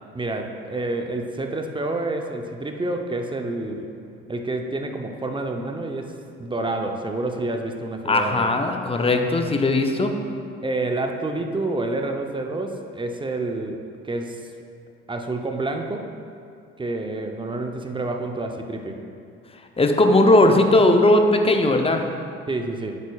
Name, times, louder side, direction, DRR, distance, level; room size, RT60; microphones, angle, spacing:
voice 1, 0.1-3.9 4.3-8.5 10.6-14.4 15.1-16.1 16.8-19.0 22.5-23.0, right 2 dB, 15° right, 4 dB, 0.7 m, -28 dB
voice 2, 8.1-10.1 19.8-22.0, left 2 dB, 20° left, 4 dB, 0.7 m, -18 dB
8.3 x 8.1 x 2.4 m, 2.4 s
figure-of-eight pair, 55°, 31 cm